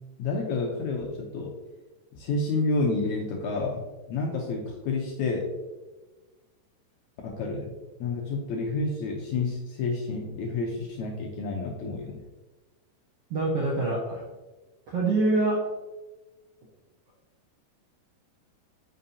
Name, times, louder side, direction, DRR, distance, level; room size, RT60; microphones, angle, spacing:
voice 1, 0.2-1.5 2.2-5.5 7.2-7.7 8.0-12.2, left 3 dB, 75° left, 0 dB, 1.8 m, -29 dB
voice 2, 13.3-14.3 14.9-15.6, right 2 dB, 70° right, -3 dB, 1.5 m, -25 dB
9.1 x 5.8 x 2.8 m, 1.2 s
omnidirectional pair, 4.1 m